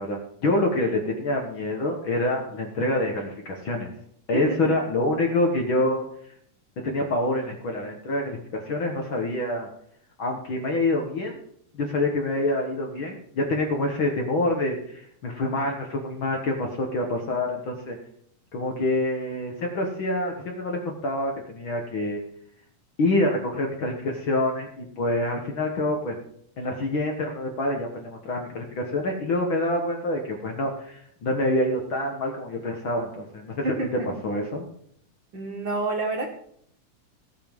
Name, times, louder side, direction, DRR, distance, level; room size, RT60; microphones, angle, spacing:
voice 1, 0.0-3.9 4.3-6.1 6.8-9.7 10.2-11.4 11.7-18.0 18.5-22.2 23.0-26.1 26.6-33.7 34.0-34.7, left 1 dB, 55° left, 2 dB, 1.6 m, -26 dB
voice 2, 33.6-34.1 35.3-36.3, right 2 dB, 50° right, 0 dB, 1.6 m, -28 dB
16.5 x 5.6 x 5.2 m, 0.67 s
omnidirectional pair, 3.5 m